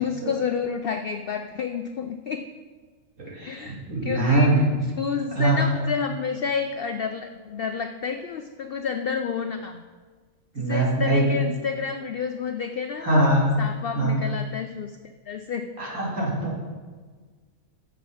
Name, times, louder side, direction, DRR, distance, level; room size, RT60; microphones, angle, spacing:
voice 1, 0.0-2.5 3.4-4.6 5.0-9.8 10.6-13.1 13.6-14.9 15.3-15.6, left 6 dB, 90° left, 7 dB, 0.5 m, -29 dB
voice 2, 3.2-4.6 5.3-5.7 10.5-11.3 13.0-13.5 13.9-14.2 15.8-16.5, right 2 dB, 65° right, -6 dB, 3.2 m, -22 dB
9.1 x 7.3 x 6.3 m, 1.5 s
omnidirectional pair, 1.6 m